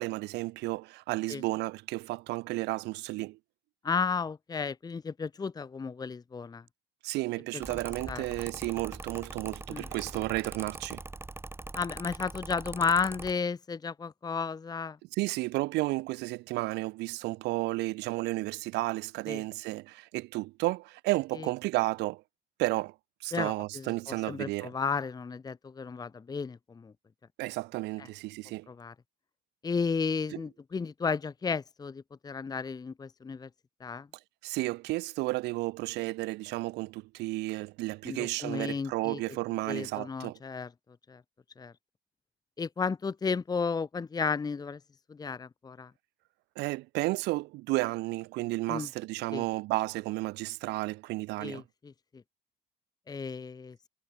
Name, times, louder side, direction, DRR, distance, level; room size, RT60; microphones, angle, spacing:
voice 1, 0.0-3.4 7.0-11.0 15.1-22.2 22.6-22.9 23.2-24.7 27.4-28.7 30.3-30.4 34.4-40.4 46.6-51.6, right 21 dB, 85° right, 0.6 m, -32 dB
voice 2, 3.8-6.6 8.1-8.2 9.7-9.9 11.7-15.0 19.3-19.4 21.4-21.5 23.3-26.9 28.7-28.9 29.6-33.5 33.8-34.1 38.1-39.2 39.7-40.7 41.1-41.2 41.6-41.7 42.6-44.8 45.1-45.9 48.7-48.9 49.3-49.4 51.4-51.9 53.1-53.8, left 5 dB, 25° left, 1.0 m, -33 dB
Mechanical fan, 7.6-13.3, right 2 dB, 15° right, 5.0 m, -42 dB
cardioid pair, 110°, 17 cm